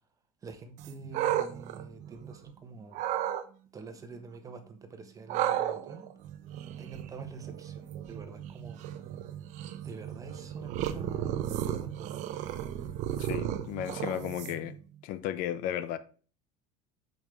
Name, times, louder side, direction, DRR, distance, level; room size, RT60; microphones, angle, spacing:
voice 1, 0.4-3.1 3.7-6.1 6.8-8.8 9.8-12.3, right 4 dB, 20° right, 1.2 m, -46 dB
sound 1, 0.8-2.5 2.9-3.4 5.3-14.8, right 11 dB, 50° right, 0.9 m, -34 dB
voice 2, 13.2-14.7 15.0-16.0, left 11 dB, 60° left, 0.7 m, -34 dB
7.3 x 5.3 x 4.7 m
supercardioid pair, 135°, 16 cm